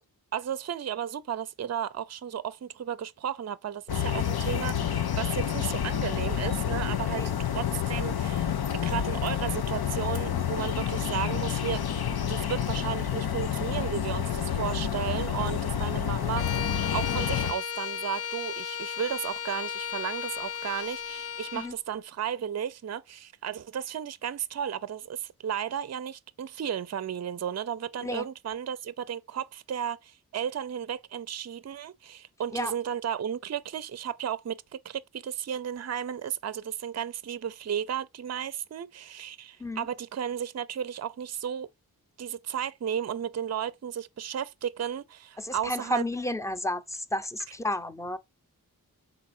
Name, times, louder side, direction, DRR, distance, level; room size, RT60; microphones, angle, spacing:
voice 1, 0.3-41.7 42.2-46.0, right 9 dB, 45° right, 0.5 m, -34 dB
sound 1, 3.9-17.5, left 9 dB, 90° left, 0.8 m, -29 dB
Bowed string instrument, 16.3-21.7, left 8 dB, 40° left, 0.4 m, -35 dB
voice 2, 45.4-48.2, left 1 dB, 10° left, 0.7 m, -32 dB
5.9 x 4.0 x 4.2 m
wide cardioid pair, 65°, 37 cm